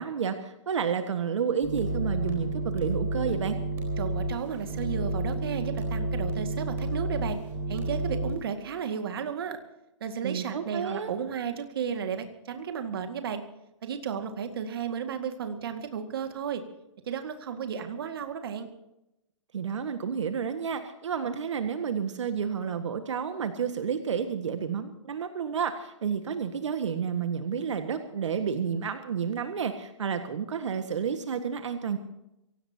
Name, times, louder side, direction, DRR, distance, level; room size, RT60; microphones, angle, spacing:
voice 1, 0.0-3.6 10.2-11.1 19.5-32.0, right 7 dB, 65° right, 7 dB, 1.7 m, -30 dB
sound 1, 1.6-8.4, right 1 dB, 15° right, 4.2 m, -30 dB
voice 2, 4.0-7.4 7.7-9.6 10.0-13.4 13.8-16.6 17.1-18.7, right 7 dB, 50° right, 7 dB, 2.0 m, -33 dB
24.5 x 17.5 x 2.9 m, 0.87 s
hypercardioid pair, 175°, 16 cm